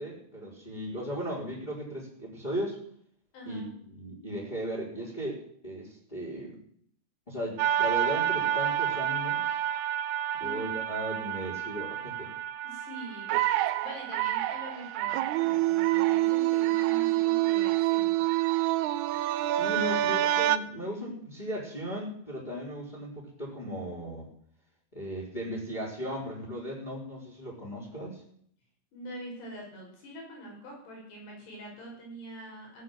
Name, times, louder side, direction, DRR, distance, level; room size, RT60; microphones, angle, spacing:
voice 1, 0.0-2.8 3.5-6.6 7.3-9.6 10.4-12.3 19.5-24.3 24.9-28.2, equal, 10° left, -5 dB, 4.2 m, -36 dB
voice 2, 3.3-3.7 10.4-10.8 12.6-13.3 13.8-18.3 19.7-20.4 28.9-32.8, right 1 dB, 80° left, -1 dB, 7.9 m, -44 dB
sound 1, 7.6-20.6, right 13 dB, 80° right, 2.6 m, -27 dB
16.5 x 8.6 x 7.8 m, 0.64 s
omnidirectional pair, 4.7 m